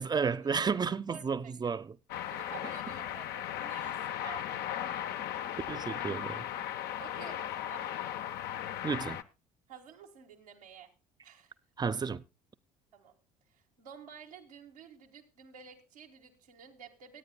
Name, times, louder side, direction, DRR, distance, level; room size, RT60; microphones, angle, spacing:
voice 1, 0.0-1.9 5.7-6.4 8.8-9.2 11.8-12.2, right 5 dB, 20° right, 0.6 m, -32 dB
voice 2, 1.1-1.7 2.3-4.4 7.0-7.8 9.7-10.9 11.2-11.5 12.9-13.1 13.5-17.2, right 7 dB, 85° right, 1.7 m, -51 dB
sound 1, 2.1-9.2, left 10 dB, 60° left, 0.7 m, -37 dB
25.0 x 9.0 x 2.2 m
hypercardioid pair, 60°, 19 cm